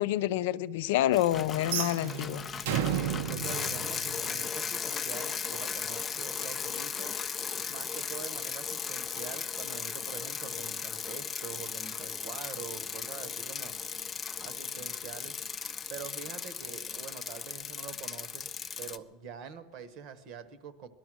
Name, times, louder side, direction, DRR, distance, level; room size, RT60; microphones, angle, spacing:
voice 1, 0.0-2.4, left 13 dB, 75° left, 0.6 m, -28 dB
Bicycle, 1.1-19.0, left 6 dB, 15° left, 0.4 m, -37 dB
sound 1, 1.6-4.7, right 9 dB, 75° right, 1.0 m, -33 dB
voice 2, 3.3-7.2 7.7-13.7 14.4-15.4 15.9-18.5 18.8-20.9, right 7 dB, 45° right, 1.1 m, -45 dB
18.5 x 12.5 x 6.2 m
supercardioid pair, 170°, 0 cm